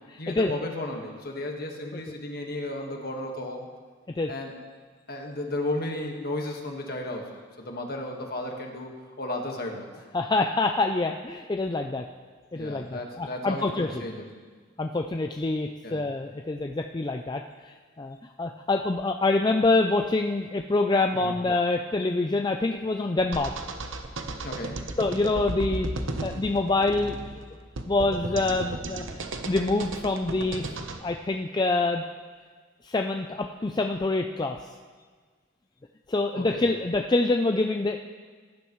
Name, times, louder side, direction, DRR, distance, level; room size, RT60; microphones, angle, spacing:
voice 1, 0.2-3.7 4.3-4.5 5.1-8.9 9.2-9.9 12.5-14.2 15.8-16.0 21.1-21.3 24.4-24.8 36.3-36.7, left 1 dB, 50° left, 2 dB, 1.5 m, -34 dB
voice 2, 10.1-12.0 12.5-13.9 14.8-17.4 18.0-23.5 25.0-25.9 26.2-27.2 27.9-29.0 29.4-30.7 31.0-32.0 32.8-34.6 36.1-38.0, left 2 dB, 20° left, 4 dB, 0.3 m, -26 dB
sound 1, 23.3-31.0, right 2 dB, 75° right, 0.9 m, -35 dB
19.0 x 10.5 x 3.1 m, 1.5 s
head